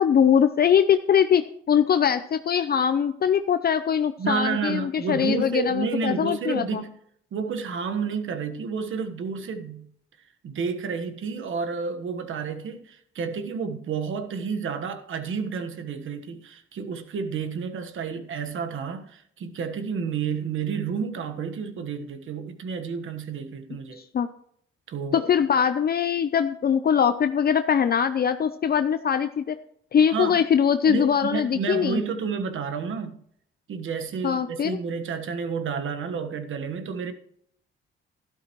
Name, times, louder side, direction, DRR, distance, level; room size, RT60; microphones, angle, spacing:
voice 1, 0.0-6.8 24.0-24.3 25.1-29.6 29.9-32.0 34.2-34.8, left 8 dB, 45° left, 0.6 m, -22 dB
voice 2, 4.2-6.9 7.3-9.9 10.4-24.0 24.9-25.3 30.1-30.4 30.9-33.2 33.7-37.1, right 6 dB, 70° right, 1.4 m, -30 dB
12.5 x 12.0 x 3.1 m
cardioid pair, 90°, 21 cm